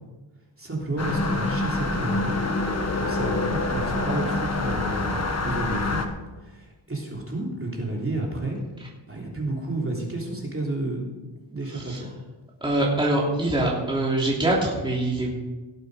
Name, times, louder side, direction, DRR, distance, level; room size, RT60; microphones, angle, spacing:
voice 1, 0.6-2.4 3.0-5.2 5.4-6.0 6.4-8.6 9.1-12.1, right 2 dB, 25° right, -2 dB, 3.3 m, -31 dB
sound 1, 1.0-6.1, left 2 dB, 30° left, 1.6 m, -26 dB
voice 2, 11.7-12.0 12.6-15.3, right 1 dB, 10° right, -4 dB, 3.0 m, -24 dB
18.0 x 8.1 x 5.1 m, 1.2 s
wide cardioid pair, 95°, 48 cm